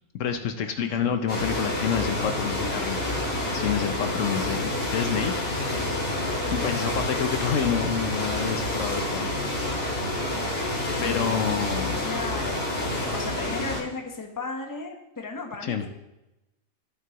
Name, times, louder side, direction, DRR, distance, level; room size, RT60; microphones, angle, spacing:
voice 1, 0.2-5.6 6.5-9.3 10.4-12.0 15.6-15.9, left 7 dB, 70° left, 7 dB, 1.0 m, -28 dB
voice 2, 0.8-1.3 10.9-15.9, left 3 dB, 15° left, 2 dB, 0.9 m, -36 dB
sound 1, 1.3-13.8, left 1 dB, 45° left, 2.1 m, -28 dB
14.0 x 6.0 x 2.9 m, 0.95 s
omnidirectional pair, 1.4 m